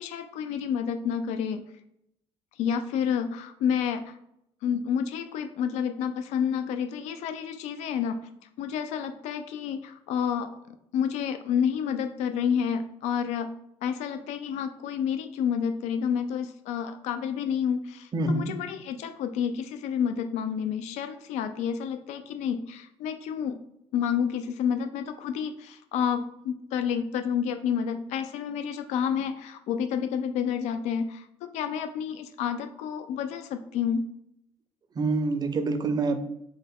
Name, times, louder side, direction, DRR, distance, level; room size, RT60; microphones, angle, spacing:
voice 1, 0.0-1.6 2.6-4.2 4.6-8.2 8.6-10.5 10.9-13.5 13.8-23.6 23.9-34.1, left 7 dB, 80° left, 8 dB, 0.4 m, -29 dB
voice 2, 18.1-18.5 35.0-36.2, right 3 dB, 35° right, 8 dB, 0.5 m, -26 dB
3.4 x 2.1 x 3.4 m, 0.77 s
supercardioid pair, 85°, 12 cm